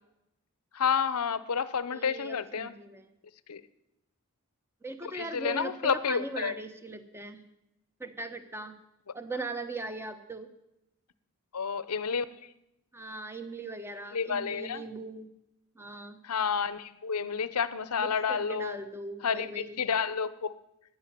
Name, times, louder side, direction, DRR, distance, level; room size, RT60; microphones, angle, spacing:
voice 1, 0.7-2.7 3.5-3.6 5.0-6.5 11.5-12.2 14.1-14.8 16.2-18.8 19.2-20.5, left 6 dB, 90° left, 16 dB, 0.8 m, -30 dB
voice 2, 1.9-3.1 4.8-7.4 8.0-8.8 9.1-10.5 12.9-15.3 15.7-16.2 18.0-19.8, right 2 dB, 10° right, 9 dB, 1.0 m, -39 dB
12.5 x 9.6 x 10.0 m, 0.89 s
head